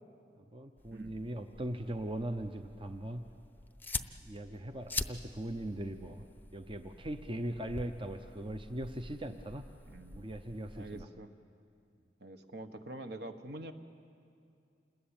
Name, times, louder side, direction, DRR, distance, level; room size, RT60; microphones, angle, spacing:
voice 1, 0.5-3.2 4.2-6.3 6.5-9.7 10.1-11.1, right 1 dB, 30° right, 6 dB, 0.8 m, -40 dB
sound 1, 0.8-11.0, left 3 dB, 10° left, 0.7 m, -45 dB
voice 2, 9.9-10.3 10.8-11.3 12.2-13.7, right 1 dB, 60° right, 7 dB, 1.4 m, -45 dB
28.0 x 20.5 x 8.9 m, 2.4 s
head